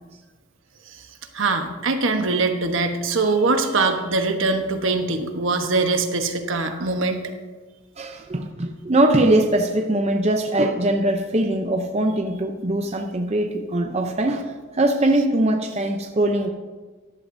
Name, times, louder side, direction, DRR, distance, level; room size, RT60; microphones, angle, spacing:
voice 1, 1.3-7.2, right 3 dB, 70° right, 5 dB, 1.1 m, -22 dB
voice 2, 8.0-16.5, right 1 dB, 30° right, 3 dB, 0.6 m, -21 dB
14.0 x 11.5 x 2.7 m, 1.3 s
head